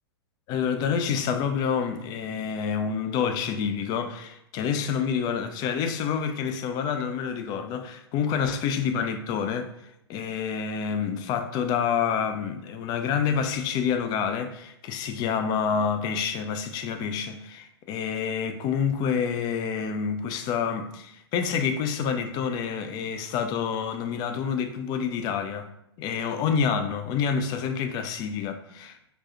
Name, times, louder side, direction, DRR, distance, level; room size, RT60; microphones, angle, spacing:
voice 1, 0.5-9.7 10.1-25.7 26.0-29.0, left 7 dB, 30° left, 0.4 m, -28 dB
4.5 x 2.6 x 2.9 m
figure-of-eight pair, 105°, 14 cm